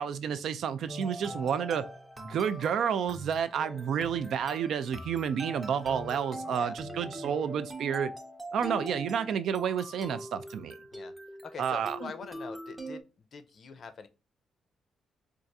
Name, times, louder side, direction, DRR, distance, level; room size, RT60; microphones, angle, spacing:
voice 1, 0.0-1.9 2.2-8.1 8.5-10.8 11.6-12.1, right 8 dB, 65° right, 0.3 m, -30 dB
sound 1, 0.9-13.0, right 1 dB, 10° right, 0.6 m, -42 dB
voice 2, 11.4-13.0 13.3-14.1, left 5 dB, 45° left, 0.5 m, -44 dB
4.5 x 2.4 x 2.6 m
cardioid pair, 150°, 0 cm